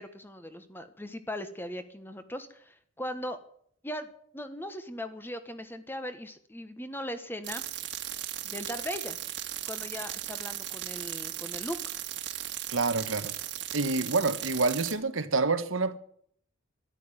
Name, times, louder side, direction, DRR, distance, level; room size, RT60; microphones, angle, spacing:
voice 1, 0.0-3.4 3.8-4.1 4.3-7.6 8.4-9.2 9.7-11.9, left 1 dB, 10° left, 1.3 m, -39 dB
sound 1, 7.4-14.9, right 12 dB, 60° right, 1.8 m, -37 dB
voice 2, 12.7-13.3 13.7-16.0, right 3 dB, 90° right, 1.4 m, -27 dB
13.5 x 12.0 x 9.1 m
head